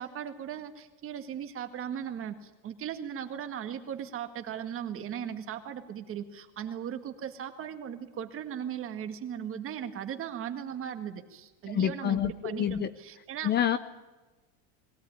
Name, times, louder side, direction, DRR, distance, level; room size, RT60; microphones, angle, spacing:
voice 1, 0.0-13.5, right 9 dB, 35° right, 7 dB, 2.0 m, -38 dB
voice 2, 11.7-12.9 13.4-13.8, left 10 dB, 25° left, 12 dB, 0.7 m, -27 dB
21.5 x 17.0 x 9.7 m, 1.2 s
cardioid pair, 160°, 39 cm